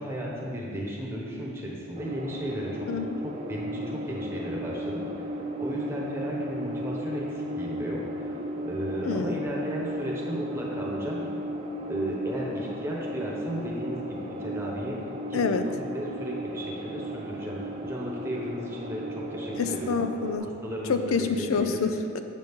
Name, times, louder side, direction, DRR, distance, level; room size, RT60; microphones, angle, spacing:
voice 1, 0.0-2.9 3.2-8.4 8.6-11.2 11.9-15.0 15.3-20.0 20.4-21.3 21.6-21.8, equal, 10° right, -3 dB, 1.1 m, -34 dB
sound 1, 1.9-20.4, equal, 30° right, 0.5 m, -35 dB
voice 2, 2.9-3.3 9.0-9.4 15.3-15.7 19.6-20.5 20.9-22.2, left 5 dB, 80° left, 8 dB, 0.4 m, -27 dB
7.4 x 6.2 x 3.6 m, 2.3 s
head